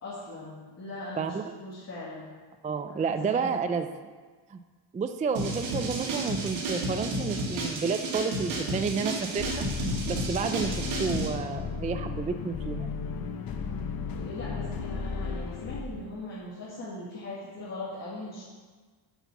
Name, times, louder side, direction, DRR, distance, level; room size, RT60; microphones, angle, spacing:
voice 1, 0.0-2.3 3.1-3.6 14.1-18.4, left 2 dB, 35° left, -8 dB, 2.1 m, -40 dB
voice 2, 2.6-3.9 4.5-4.6 4.9-9.7 10.1-12.9, right 5 dB, 20° right, 8 dB, 0.3 m, -30 dB
sound 1, 5.4-11.3, right 2 dB, 85° right, 2.1 m, -32 dB
sound 2, 9.4-15.8, left 5 dB, 50° left, 0.9 m, -35 dB
8.1 x 5.9 x 7.1 m, 1.4 s
cardioid pair, 125°, 46 cm